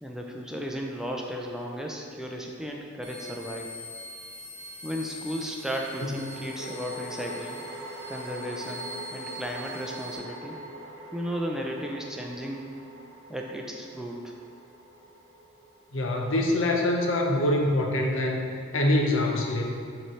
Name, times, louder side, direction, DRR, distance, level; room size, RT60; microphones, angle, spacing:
voice 1, 0.0-3.7 4.8-7.6 8.1-10.6 11.1-12.7 13.3-14.3, equal, 5° right, 0 dB, 0.4 m, -35 dB
sound 1, 2.7-2.8 5.7-17.0, right 1 dB, 80° right, 0.8 m, -43 dB
sound 2, 3.0-10.2, left 1 dB, 20° right, 1.3 m, -43 dB
voice 2, 15.9-18.5 18.7-19.6, left 1 dB, 90° left, 1 dB, 0.7 m, -24 dB
7.0 x 3.2 x 4.4 m, 2.2 s
head